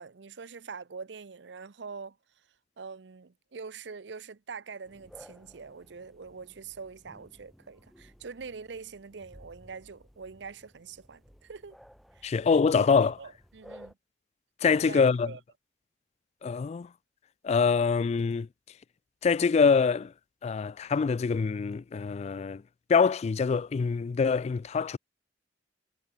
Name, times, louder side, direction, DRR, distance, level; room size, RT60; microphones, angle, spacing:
voice 1, 0.0-2.2 2.8-11.8 12.1-12.3 12.7-13.9 14.7-15.4, right 5 dB, 75° right, 0.7 m, -44 dB
sound 1, 4.8-13.9, equal, ahead, 1.0 m, -56 dB
voice 2, 12.2-13.2 14.6-15.3 16.4-16.9 17.4-18.5 19.2-20.1 20.4-22.6 22.9-25.0, left 5 dB, 35° left, 0.3 m, -25 dB
head